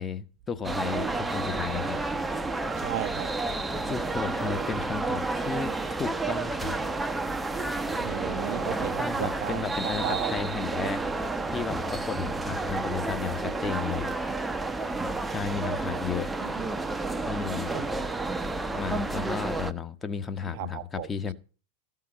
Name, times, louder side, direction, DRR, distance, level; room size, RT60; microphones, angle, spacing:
voice 1, 0.0-2.0 3.9-6.7 9.0-11.0 11.5-14.1 15.3-16.3 17.2-17.7 18.7-21.3, left 6 dB, 20° left, 1.0 m, -33 dB
sound 1, 0.6-19.7, right 3 dB, 10° right, 0.7 m, -30 dB
voice 2, 2.8-3.9 8.0-10.3 10.8-10.9 12.5-12.6 12.8-12.9 16.4-16.7 17.7-18.2 20.5-21.1, right 13 dB, 45° right, 0.7 m, -36 dB
14.0 x 5.8 x 8.8 m
figure-of-eight pair, 90°, 0 cm